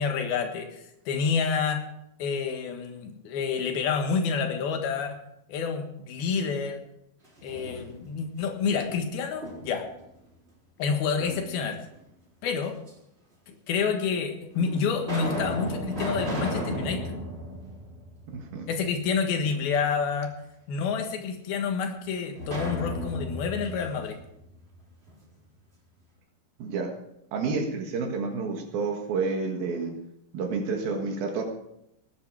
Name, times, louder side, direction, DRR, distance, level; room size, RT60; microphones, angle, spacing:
voice 1, 0.0-1.9 2.2-5.2 5.5-6.8 7.4-9.9 10.8-11.8 12.4-12.8 13.5-17.2 18.7-20.3 20.7-24.2, left 6 dB, 85° left, 5 dB, 3.5 m, -28 dB
sound 1, 7.2-8.2 8.7-9.9 11.2-12.0 12.9-13.0 13.8-13.9 14.5-18.6 19.0-19.1 22.4-25.2, equal, 15° right, 4.0 m, -35 dB
voice 2, 18.3-18.7 26.6-26.9 27.3-29.9 30.3-31.5, right 4 dB, 80° right, 2 dB, 3.4 m, -29 dB
18.5 x 9.9 x 4.8 m, 0.80 s
omnidirectional pair, 4.2 m